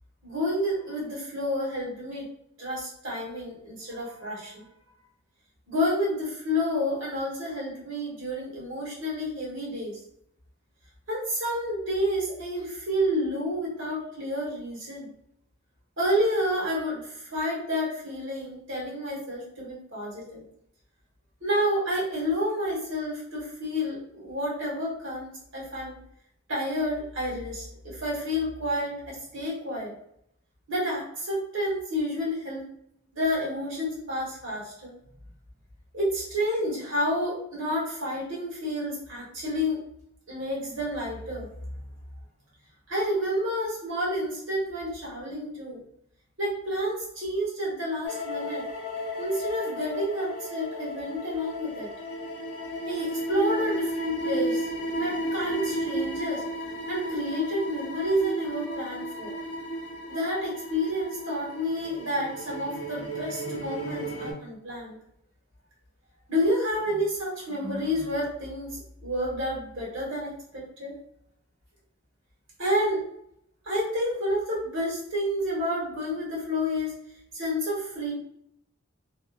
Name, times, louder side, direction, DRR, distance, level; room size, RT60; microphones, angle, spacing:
voice 1, 0.2-2.2 2.6-4.6 5.7-10.0 11.1-15.1 16.0-20.4 21.4-26.0 26.5-29.9 30.7-32.7 33.1-34.9 35.9-39.8 40.3-41.7 42.9-45.8 46.4-48.6 49.2-51.9 52.9-54.7 55.0-56.4 56.9-59.3 60.1-65.0 66.3-70.9 72.6-73.0 73.6-76.9 77.3-78.1, equal, 65° right, -5 dB, 1.4 m, -29 dB
sound 1, 48.0-64.3, equal, 75° left, 0.6 m, -33 dB
2.9 x 2.0 x 2.4 m, 0.73 s
head